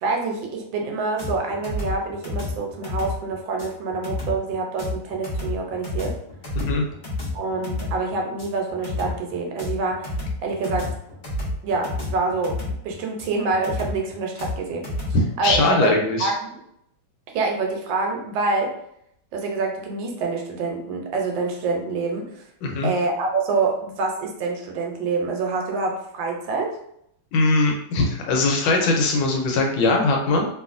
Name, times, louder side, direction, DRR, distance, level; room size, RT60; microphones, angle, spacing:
voice 1, 0.0-6.1 7.3-10.0 10.4-10.9 11.6-14.9 15.4-16.4 17.3-18.7 19.3-22.3 22.8-26.8, right 3 dB, 75° right, 1 dB, 1.3 m, -26 dB
sound 1, 1.2-15.6, left 2 dB, 50° left, 0.5 m, -31 dB
voice 2, 15.1-16.3 22.6-22.9 27.3-30.5, left 3 dB, 85° left, 1 dB, 1.4 m, -21 dB
2.9 x 2.6 x 2.4 m, 0.74 s
omnidirectional pair, 2.1 m